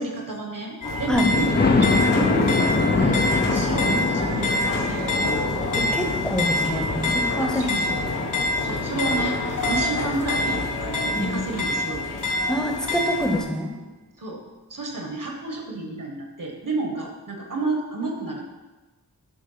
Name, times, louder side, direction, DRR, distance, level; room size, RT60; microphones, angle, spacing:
voice 1, 0.0-5.4 7.4-8.1 8.6-12.0 14.2-14.4 14.7-18.4, right 2 dB, 55° right, 1 dB, 1.1 m, -30 dB
sound 1, 0.8-13.4, left 2 dB, 50° left, 1.2 m, -26 dB
Thunder, 1.1-10.9 11.4-11.5 11.9-12.0 12.3-12.4, left 3 dB, 25° left, 0.4 m, -25 dB
voice 2, 5.7-7.6 11.1-11.4 12.5-13.7, equal, ahead, 1 dB, 0.9 m, -26 dB
6.6 x 3.3 x 5.5 m, 1.2 s
wide cardioid pair, 100°, 39 cm